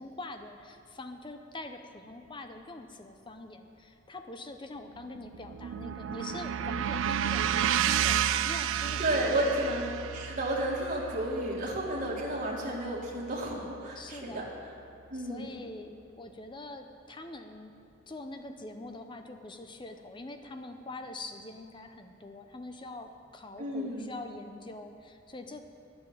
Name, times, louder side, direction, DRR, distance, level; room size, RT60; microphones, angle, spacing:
voice 1, 0.0-9.6 14.0-14.5 15.1-17.7 18.1-25.6, left 2 dB, 25° left, 6 dB, 0.7 m, -44 dB
sound 1, 5.0-13.2, right 9 dB, 85° right, 0.4 m, -31 dB
voice 2, 9.0-9.9 10.1-14.5 15.1-15.5 23.6-24.1, right 1 dB, 45° right, -5 dB, 2.0 m, -32 dB
11.0 x 6.9 x 8.7 m, 2.5 s
head